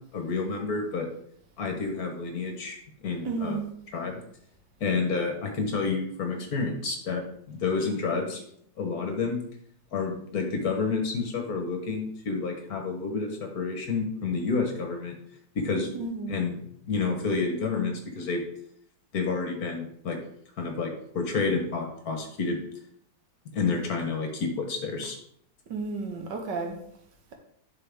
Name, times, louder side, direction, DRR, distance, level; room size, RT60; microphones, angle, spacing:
voice 1, 0.1-1.1 1.6-2.8 3.0-3.6 3.9-4.2 4.8-8.4 8.8-9.4 9.9-15.1 15.5-15.9 16.3-16.5 16.9-18.4 19.1-20.2 20.6-22.6 23.5-25.2, left 4 dB, 55° left, 3 dB, 1.5 m, -29 dB
voice 2, 3.2-3.6 15.9-16.4 25.7-26.8, right 3 dB, 70° right, 3 dB, 1.7 m, -32 dB
11.0 x 4.3 x 3.6 m, 0.68 s
omnidirectional pair, 2.1 m